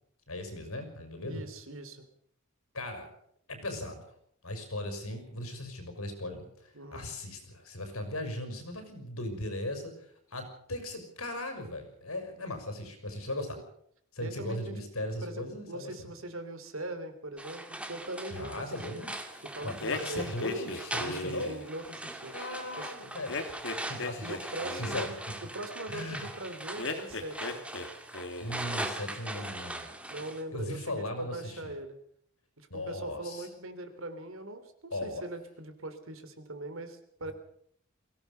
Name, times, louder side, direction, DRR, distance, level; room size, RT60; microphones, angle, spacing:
voice 1, 0.3-1.4 2.7-3.1 3.5-4.0 4.4-9.9 10.3-13.6 14.1-16.1 18.3-21.6 22.3-23.4 23.9-24.4 24.8-25.1 25.9-26.3 28.4-29.9 30.5-31.7 32.7-33.5 34.9-35.2, left 1 dB, 75° left, 7 dB, 6.0 m, -38 dB
voice 2, 1.3-2.1 6.7-7.1 13.5-13.6 14.2-14.8 15.2-18.6 18.9-19.1 19.4-20.3 21.5-22.3 22.8-22.9 24.2-25.1 25.4-27.7 30.1-32.0 32.6-37.3, right 1 dB, 65° right, 9 dB, 3.2 m, -41 dB
sound 1, 17.4-30.4, right 1 dB, 5° right, 2.1 m, -40 dB
sound 2, 19.8-21.7 23.3-25.1 26.8-27.9 28.1-28.7, left 2 dB, 60° left, 2.7 m, -37 dB
23.0 x 17.0 x 6.9 m, 0.68 s
head